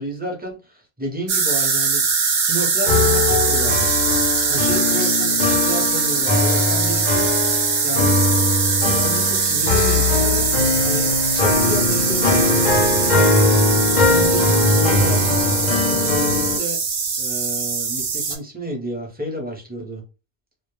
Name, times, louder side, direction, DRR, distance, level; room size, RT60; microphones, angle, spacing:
voice 1, 0.0-3.9 4.5-8.2 8.9-10.5 10.8-13.6 14.0-16.8 17.2-20.0, equal, 10° right, -1 dB, 0.5 m, -31 dB
sound 1, 1.3-18.4, right 5 dB, 60° right, 0.6 m, -21 dB
sound 2, 2.9-16.6, left 3 dB, 55° left, 0.5 m, -20 dB
2.1 x 2.0 x 2.9 m, 0.32 s
omnidirectional pair, 1.0 m